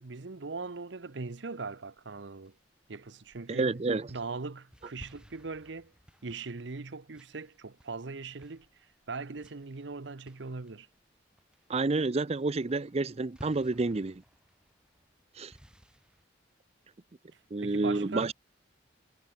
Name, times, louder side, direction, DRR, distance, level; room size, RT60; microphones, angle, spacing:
voice 1, 0.0-2.5 2.9-3.8 4.1-5.9 6.2-10.9 17.3-18.3, right 4 dB, 65° right, 0.9 m, -40 dB
sound 1, 2.0-3.6 4.1-11.1 11.4-11.8 12.2-12.4 12.7-16.2, equal, 5° right, 4.5 m, -57 dB
voice 2, 3.5-4.1 11.7-14.2 15.3-15.6 17.5-18.3, right 3 dB, 35° right, 0.6 m, -29 dB
head